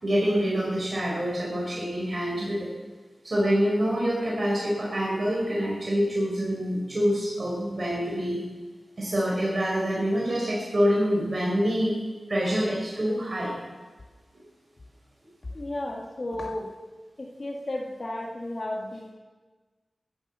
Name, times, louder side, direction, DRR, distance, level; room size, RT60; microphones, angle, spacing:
voice 1, 0.0-2.7 3.2-8.4 9.0-11.9 12.3-13.5 14.3-14.5, equal, 50° right, -4 dB, 4.7 m, -26 dB
voice 2, 15.5-16.7 17.2-19.1, left 1 dB, 50° left, -1 dB, 1.8 m, -33 dB
14.0 x 10.5 x 6.8 m, 1.3 s
wide cardioid pair, 65°, 0 cm